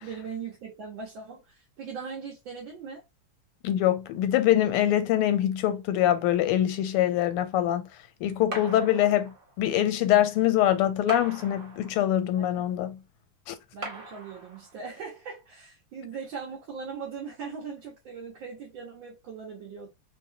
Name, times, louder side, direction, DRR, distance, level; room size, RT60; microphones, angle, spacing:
voice 1, 0.0-3.0 12.4-12.6 13.7-19.9, right 5 dB, 65° right, 1.7 m, -40 dB
voice 2, 3.6-7.9 8.2-13.0 13.5-13.6, left 12 dB, 90° left, 1.6 m, -24 dB
sound 1, 8.5-9.6 11.1-12.2 13.8-14.9, right 1 dB, 35° right, 1.0 m, -40 dB
3.7 x 2.8 x 2.7 m
omnidirectional pair, 2.4 m